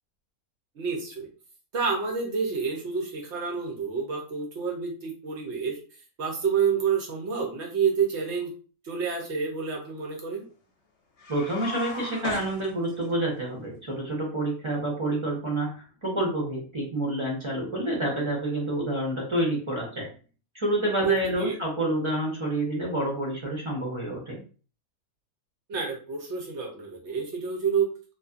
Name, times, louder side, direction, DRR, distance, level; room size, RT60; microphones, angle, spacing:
voice 1, 0.8-1.3 1.7-5.8 6.2-8.5 8.8-10.4 21.0-21.5 25.7-27.9, right 6 dB, 65° right, 0 dB, 0.7 m, -28 dB
sound 1, 11.2-13.2, left 3 dB, 55° left, 0.9 m, -37 dB
voice 2, 11.3-20.1 20.5-24.4, right 1 dB, 30° right, -3 dB, 0.6 m, -28 dB
2.6 x 2.4 x 2.3 m, 0.37 s
omnidirectional pair, 1.6 m